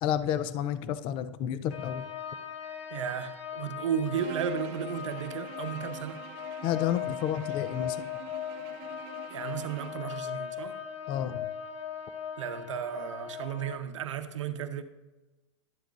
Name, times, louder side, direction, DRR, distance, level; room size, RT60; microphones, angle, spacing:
voice 1, 0.0-2.1 6.6-8.0 11.1-11.5, left 10 dB, 35° left, 0.4 m, -30 dB
sound 1, 1.7-13.8, left 9 dB, 65° left, 0.9 m, -39 dB
voice 2, 2.9-6.2 9.3-10.8 12.4-14.8, right 8 dB, 85° right, 0.7 m, -34 dB
Bowed string instrument, 4.1-10.1, right 13 dB, 45° right, 0.4 m, -47 dB
11.5 x 7.6 x 2.4 m
hypercardioid pair, 130°, 16 cm